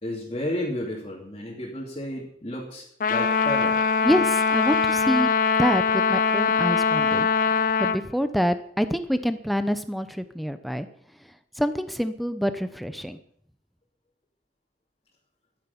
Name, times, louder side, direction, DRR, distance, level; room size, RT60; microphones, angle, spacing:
voice 1, 0.0-3.8, left 1 dB, 30° left, -5 dB, 3.0 m, -32 dB
Trumpet, 3.0-8.0, left 5 dB, 50° left, 0.5 m, -22 dB
voice 2, 4.0-5.3 5.6-7.3 7.8-10.9 11.6-13.2, equal, ahead, 10 dB, 0.8 m, -26 dB
12.5 x 10.5 x 7.1 m, 0.64 s
head